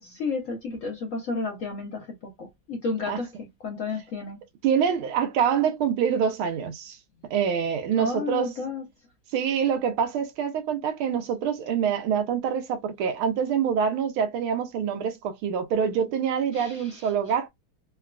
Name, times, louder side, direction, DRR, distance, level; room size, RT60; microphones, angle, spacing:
voice 1, 0.0-4.4 7.9-8.8 16.5-17.1, left 4 dB, 90° left, 0.7 m, -32 dB
voice 2, 4.6-7.0 7.3-8.5 9.3-17.5, right 7 dB, 85° right, 1.6 m, -25 dB
3.8 x 2.2 x 2.4 m
omnidirectional pair, 2.3 m